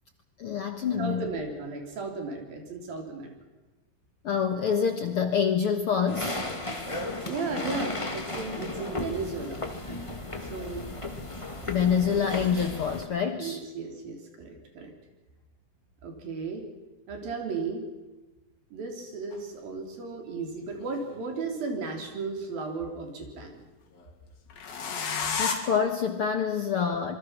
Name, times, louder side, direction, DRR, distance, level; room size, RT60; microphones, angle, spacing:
voice 1, 0.4-1.3 4.2-6.4 11.7-13.6 25.4-27.2, left 7 dB, 60° left, 6 dB, 1.6 m, -26 dB
voice 2, 1.0-3.3 7.3-9.7 10.4-10.9 13.4-14.9 16.0-16.7 17.1-17.9 18.7-23.6, right 4 dB, 80° right, 3 dB, 5.7 m, -35 dB
sound 1, 6.1-13.0, left 2 dB, 15° left, 1.2 m, -35 dB
sound 2, 19.3-19.4 20.7-21.7 24.5-25.5, left 6 dB, 80° left, 4.6 m, -31 dB
26.5 x 23.5 x 6.1 m, 1.2 s
omnidirectional pair, 4.1 m